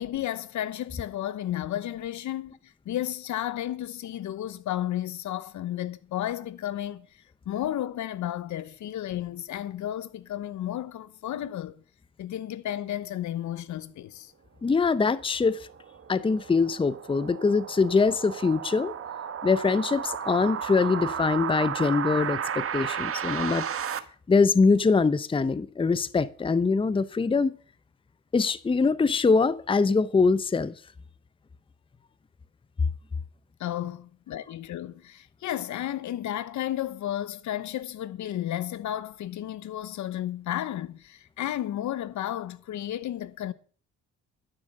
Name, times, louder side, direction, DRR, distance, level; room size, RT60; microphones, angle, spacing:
voice 1, 0.0-7.1 7.5-11.8 12.2-14.3 33.6-43.5, left 12 dB, 70° left, 0.9 m, -33 dB
voice 2, 14.6-15.7 16.1-18.9 19.4-23.7 24.3-27.5 28.3-30.7, left 4 dB, 15° left, 0.6 m, -23 dB
sound 1, 15.3-24.0, right 8 dB, 50° right, 1.2 m, -33 dB
12.5 x 7.3 x 6.6 m
cardioid pair, 90°, 30 cm